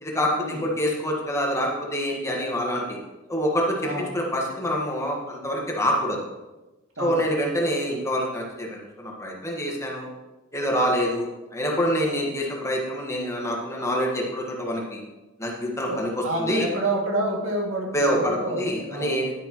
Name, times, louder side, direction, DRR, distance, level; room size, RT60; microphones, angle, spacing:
voice 1, 0.0-3.0 3.3-6.2 7.0-10.1 10.5-15.0 15.4-16.7 17.9-19.3, equal, 15° left, -1 dB, 1.5 m, -26 dB
voice 2, 15.9-19.1, right 1 dB, 75° right, -2 dB, 2.4 m, -28 dB
11.0 x 9.8 x 3.0 m, 1.1 s
head